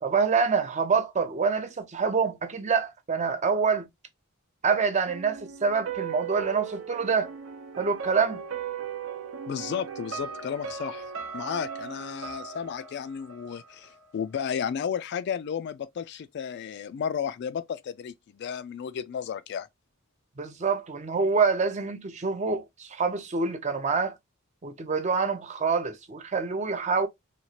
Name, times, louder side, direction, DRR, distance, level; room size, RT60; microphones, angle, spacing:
voice 1, 0.0-3.9 4.6-7.3 7.8-8.4 20.4-24.1 24.6-27.1, right 5 dB, 35° right, 0.5 m, -26 dB
sound 1, 5.1-14.0 14.4-14.5, right 7 dB, 70° right, 0.7 m, -38 dB
voice 2, 9.5-11.0 11.3-19.7, left 7 dB, 55° left, 0.3 m, -33 dB
3.0 x 2.3 x 2.7 m
head